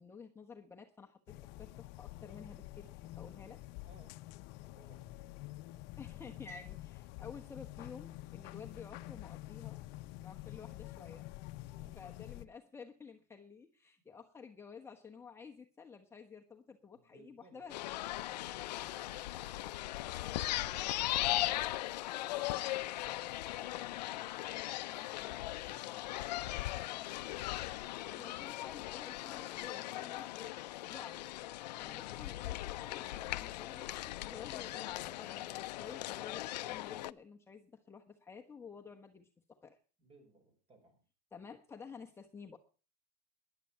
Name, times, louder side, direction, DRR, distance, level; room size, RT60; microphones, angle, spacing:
voice 1, 0.0-3.6 6.0-11.3 11.9-17.8 28.0-30.5 30.8-31.3 31.6-39.8 41.3-42.6, left 5 dB, 10° left, 2 dB, 1.1 m, -52 dB
sound 1, 1.3-12.5, left 17 dB, 50° left, 0.8 m, -48 dB
voice 2, 3.8-4.2 4.6-5.2 11.7-12.0 16.9-17.8 18.3-28.3 40.0-41.0, right 3 dB, 25° right, 7 dB, 6.0 m, -64 dB
sound 2, 17.7-37.1, left 16 dB, 80° left, 0.6 m, -39 dB
12.5 x 11.0 x 5.7 m, 0.37 s
supercardioid pair, 125°, 21 cm